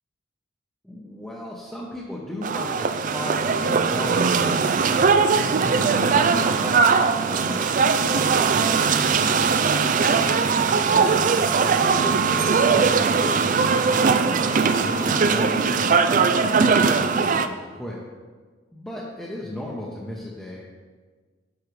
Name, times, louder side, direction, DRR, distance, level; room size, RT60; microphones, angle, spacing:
voice 1, 0.8-6.9 7.2-10.2 10.9-18.0 18.7-20.6, left 1 dB, 5° left, -6 dB, 0.8 m, -36 dB
sound 1, 2.4-17.5, right 5 dB, 40° right, 0.3 m, -20 dB
9.8 x 6.5 x 3.2 m, 1.4 s
head